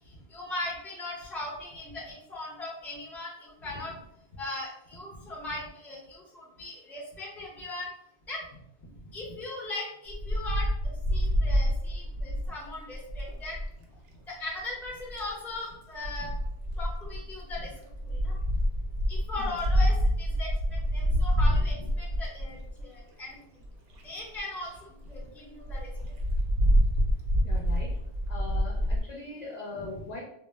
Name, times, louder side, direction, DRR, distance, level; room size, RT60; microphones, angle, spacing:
voice 1, 0.3-3.9 4.4-7.9 8.3-8.4 9.1-13.6 14.3-16.3 16.8-17.7 18.0-18.4 19.1-23.4 24.0-24.7 25.1-25.9, left 2 dB, ahead, -4 dB, 0.4 m, -39 dB
voice 2, 3.6-4.0 5.1-5.3 9.0-9.2 16.2-16.3 19.4-19.5 27.4-27.9 28.3-30.2, left 2 dB, 55° left, -4 dB, 0.4 m, -41 dB
Wind, 10.1-13.7 14.8-15.3 16.0-23.0 23.6-23.7 23.9-24.0 24.4-24.5 24.7-24.8 25.1-25.2 25.7-29.0, equal, 65° right, 0.7 m, -27 dB
2.0 x 2.0 x 3.2 m, 0.79 s
omnidirectional pair, 1.1 m